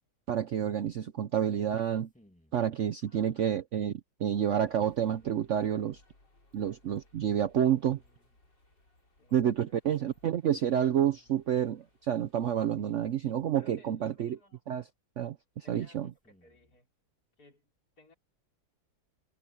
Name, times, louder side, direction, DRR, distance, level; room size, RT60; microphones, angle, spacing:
voice 1, 0.3-2.1 2.5-3.9 4.2-6.0 6.5-8.0 9.3-14.4 14.7-14.8 15.2-16.1, right 9 dB, 65° right, 0.7 m, -29 dB
sound 1, 1.8-2.7 4.8-5.4 7.6-8.4 10.5-11.4 13.2-14.2 16.0-16.8, left 1 dB, 5° left, 2.5 m, -62 dB
voice 2, 3.0-3.5 9.2-9.8 10.0-10.2 12.5-12.9 13.6-14.6 15.6-16.9 17.4-18.1, left 2 dB, 60° left, 5.7 m, -61 dB
sound 2, 4.6-12.6, left 2 dB, 80° left, 6.9 m, -65 dB
omnidirectional pair, 1.9 m